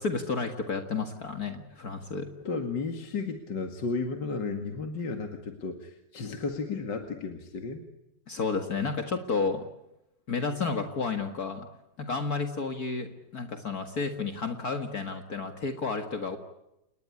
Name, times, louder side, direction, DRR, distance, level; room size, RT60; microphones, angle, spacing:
voice 1, 0.0-2.3 8.3-9.6 10.3-11.7 12.0-16.4, left 4 dB, 55° left, 6 dB, 2.3 m, -31 dB
voice 2, 2.4-7.8, left 4 dB, 70° left, 6 dB, 2.7 m, -33 dB
29.0 x 20.5 x 9.9 m, 0.90 s
omnidirectional pair, 2.0 m